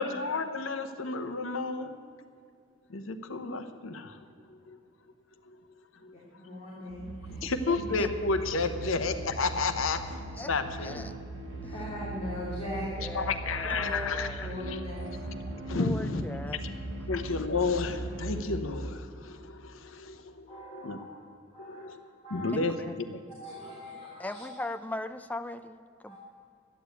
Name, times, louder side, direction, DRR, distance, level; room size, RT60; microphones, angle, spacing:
voice 1, 0.0-2.0 2.9-4.2 4.7-4.8 6.0-6.1 6.4-6.5 7.4-10.0 10.5-11.1 13.1-14.8 15.7-16.2 17.1-21.0 21.6-22.0 22.3-22.8 23.1-23.2, left 3 dB, 75° left, 8 dB, 0.9 m, -31 dB
voice 2, 6.1-7.4 7.7-7.8 11.6-12.9 13.7-13.9 14.4-15.1 20.5-21.1 21.5-21.8 22.2-22.5 23.4-24.4 26.0-26.2, left 1 dB, 30° left, -7 dB, 2.8 m, -40 dB
sound 1, 6.9-18.4, right 2 dB, 70° right, 1.8 m, -39 dB
voice 3, 7.4-8.1 10.4-10.5 10.8-11.1 11.6-11.7 13.0-14.5 15.8-16.6 22.5-23.0 24.2-26.2, left 1 dB, 10° left, 9 dB, 0.4 m, -39 dB
13.0 x 10.0 x 8.2 m, 2.4 s
head